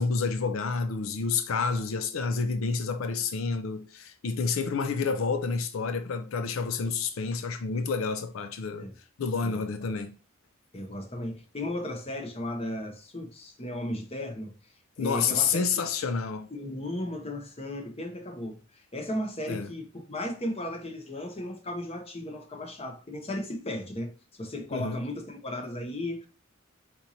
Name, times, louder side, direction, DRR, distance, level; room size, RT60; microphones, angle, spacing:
voice 1, 0.0-8.9 9.2-10.1 15.0-16.5 19.5-19.7 24.7-25.0, left 5 dB, 85° left, 0.5 m, -29 dB
voice 2, 10.7-14.5 15.0-15.8 16.5-26.3, left 1 dB, 30° left, 1.0 m, -35 dB
4.5 x 4.2 x 2.7 m
head